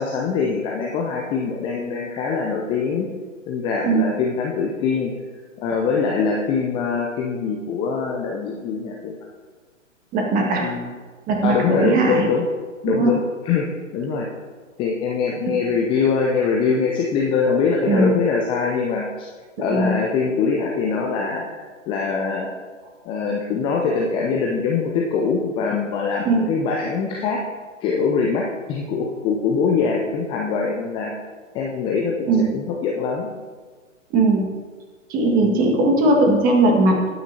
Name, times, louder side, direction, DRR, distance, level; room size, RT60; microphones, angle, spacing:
voice 1, 0.0-3.1 3.5-5.1 5.6-9.2 10.6-10.9 11.4-12.5 12.8-13.7 13.9-14.3 14.8-19.3 19.6-22.5 23.1-27.4 27.8-31.1 31.5-33.3 35.4-35.7, left 5 dB, 15° left, -1 dB, 0.6 m, -23 dB
voice 2, 10.1-10.7 11.3-12.3 12.9-13.1 17.9-18.2 19.6-20.0 26.3-26.5 32.3-32.5 34.1-34.5 35.1-37.1, right 2 dB, 20° right, 1 dB, 1.9 m, -19 dB
19.5 x 9.5 x 2.9 m, 1.5 s
figure-of-eight pair, 115°, 39 cm